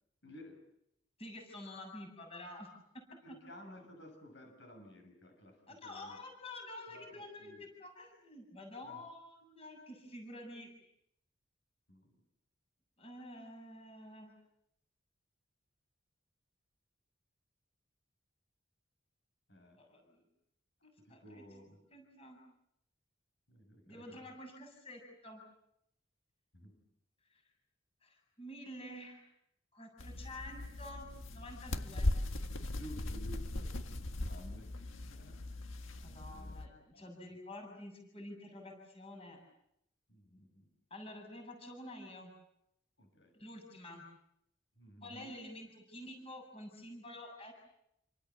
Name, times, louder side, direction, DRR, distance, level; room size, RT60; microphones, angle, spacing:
voice 1, 0.2-0.6 3.2-6.2 6.9-7.6 8.8-9.0 11.9-12.1 19.5-19.8 21.0-21.8 23.5-24.3 26.5-26.7 32.8-33.7 34.2-34.7 35.1-35.8 36.3-36.6 36.9-37.1 40.1-40.7 43.0-43.3 44.8-45.3, left 1 dB, 65° left, 5 dB, 7.0 m, -54 dB
voice 2, 1.2-2.7 3.3-3.4 5.7-10.7 13.0-14.4 19.8-20.2 20.8-21.4 21.9-22.4 23.9-25.4 27.3-27.4 28.0-29.3 29.7-32.1 36.0-39.4 40.9-42.3 43.3-44.1 45.0-47.5, left 1 dB, 30° left, 3 dB, 7.2 m, -49 dB
sound 1, 30.0-36.7, left 1 dB, 80° left, 1.7 m, -39 dB
29.0 x 26.0 x 7.3 m, 0.78 s
head